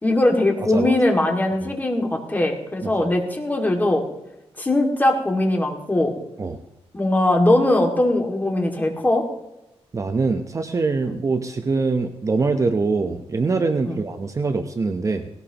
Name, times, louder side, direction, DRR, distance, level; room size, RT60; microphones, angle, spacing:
voice 1, 0.0-4.0 4.6-6.1 6.9-9.3 11.0-11.1 13.8-14.0, left 1 dB, 15° left, 2 dB, 2.2 m, -20 dB
voice 2, 9.9-15.3, right 4 dB, 30° right, 7 dB, 0.8 m, -23 dB
19.0 x 17.5 x 2.9 m, 0.90 s
wide cardioid pair, 130°, 11 cm